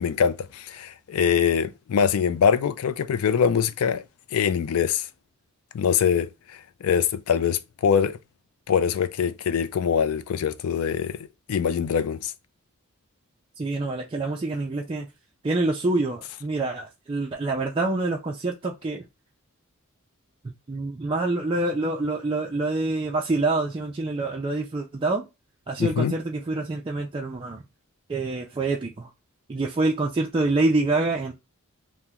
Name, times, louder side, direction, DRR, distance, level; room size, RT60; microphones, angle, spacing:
voice 1, 0.0-4.0 4.3-5.0 5.7-6.3 6.8-8.2 8.7-11.2 11.5-12.3 25.8-26.2, left 7 dB, 80° left, 0.4 m, -23 dB
voice 2, 13.6-15.1 15.4-19.0 20.7-25.2 25.7-27.6 28.1-29.1 29.5-31.3, right 2 dB, 25° right, 0.3 m, -26 dB
2.8 x 2.1 x 3.5 m
head